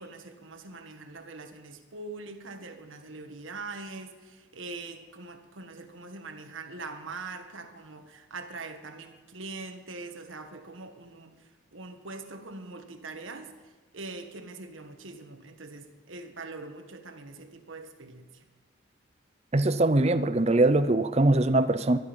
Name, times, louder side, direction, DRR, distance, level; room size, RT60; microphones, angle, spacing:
voice 1, 0.0-18.4, right 3 dB, 75° right, 1.5 m, -43 dB
voice 2, 19.5-22.0, right 2 dB, 30° right, 0.6 m, -22 dB
22.0 x 11.0 x 5.3 m
head